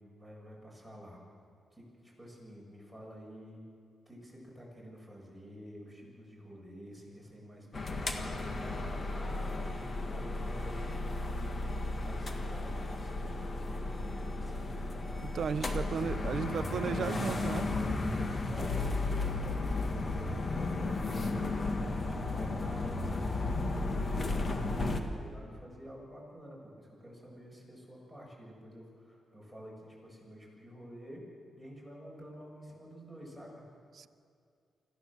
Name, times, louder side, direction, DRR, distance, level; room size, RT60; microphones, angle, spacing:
voice 1, 0.1-1.2 1.7-3.6 4.1-14.9 15.7-17.9 18.5-31.2 31.6-33.6, equal, ahead, -2 dB, 7.4 m, -49 dB
sound 1, 7.7-25.0, left 2 dB, 35° left, 1.9 m, -34 dB
voice 2, 15.2-17.7 33.9-34.1, right 7 dB, 60° right, 14 dB, 0.7 m, -35 dB
25.5 x 15.5 x 7.4 m, 2.3 s
cardioid pair, 100°, 0 cm